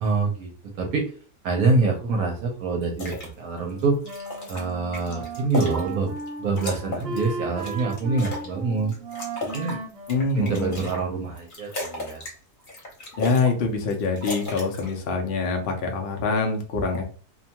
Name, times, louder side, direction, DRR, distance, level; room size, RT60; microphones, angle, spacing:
voice 1, 0.0-1.1 1.4-4.0 4.5-6.1 6.4-8.9 9.5-9.8 10.3-12.2, right 3 dB, 70° right, 2 dB, 1.0 m, -25 dB
sound 1, 2.8-3.3 3.7-6.3 6.6-8.5 8.9-11.0 11.4-12.4 12.6-13.5 13.8-14.9, left 1 dB, 40° left, 0.8 m, -35 dB
Wind instrument woodwind instrument, 3.5-11.0, right 3 dB, 45° right, 1.1 m, -36 dB
voice 2, 10.1-10.8 13.2-17.0, left 4 dB, 75° left, 2 dB, 0.5 m, -25 dB
2.7 x 2.2 x 2.8 m, 0.40 s
omnidirectional pair, 1.7 m